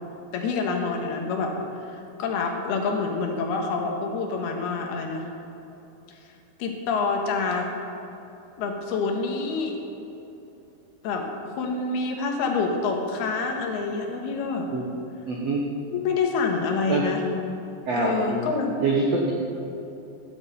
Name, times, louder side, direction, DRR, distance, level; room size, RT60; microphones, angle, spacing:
voice 1, 0.3-5.2 6.6-7.7 8.6-9.8 11.0-14.7 15.9-17.2 17.9-18.8, left 4 dB, 75° left, 2 dB, 3.2 m, -27 dB
voice 2, 15.3-15.6 16.9-17.0 17.9-18.5 18.8-19.3, right 3 dB, 85° right, -1 dB, 1.4 m, -25 dB
12.5 x 9.6 x 7.9 m, 2.9 s
omnidirectional pair, 4.8 m